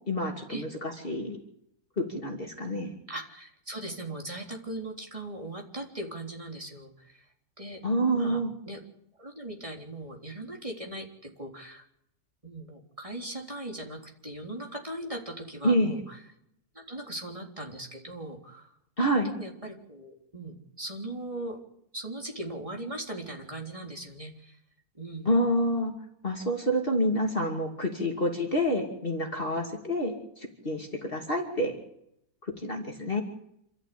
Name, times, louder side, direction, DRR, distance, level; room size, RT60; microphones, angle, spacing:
voice 1, 0.1-1.4 2.0-2.9 7.8-8.5 15.6-15.9 19.0-19.3 25.2-25.9 26.2-31.7 32.6-33.2, equal, 40° left, 1 dB, 2.9 m, -28 dB
voice 2, 3.1-7.3 7.6-7.8 8.1-8.4 8.7-8.8 9.2-11.8 12.4-16.2 16.7-18.8 19.2-21.6 21.9-24.6 24.9-25.3 28.0-28.1, right 1 dB, 20° right, 0 dB, 3.8 m, -39 dB
27.0 x 14.0 x 8.6 m, 0.77 s
omnidirectional pair, 1.5 m